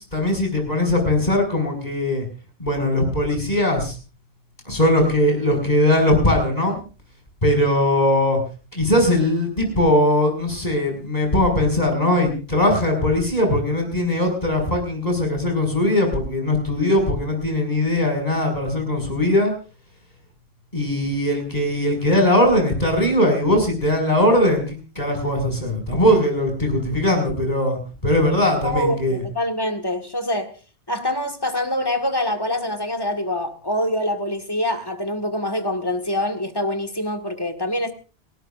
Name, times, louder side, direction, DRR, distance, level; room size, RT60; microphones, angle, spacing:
voice 1, 0.1-2.3 2.6-4.0 4.6-6.9 7.4-8.4 8.7-19.5 20.7-29.2, left 1 dB, 40° left, 5.8 m, -20 dB
voice 2, 28.6-30.5 30.9-37.9, left 1 dB, 20° left, 1.7 m, -25 dB
30.0 x 12.5 x 2.5 m
omnidirectional pair, 1.1 m